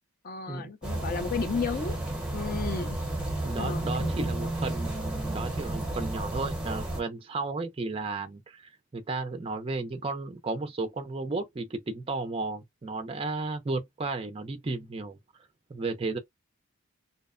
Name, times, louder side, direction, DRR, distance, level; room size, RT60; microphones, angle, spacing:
voice 1, 0.2-2.0 2.3-3.0 3.6-4.3, left 5 dB, 40° left, 0.4 m, -33 dB
sound 1, 0.8-7.0, right 1 dB, 5° right, 0.7 m, -32 dB
voice 2, 3.4-15.2 15.7-16.2, right 3 dB, 25° right, 0.3 m, -34 dB
2.7 x 2.0 x 2.4 m
head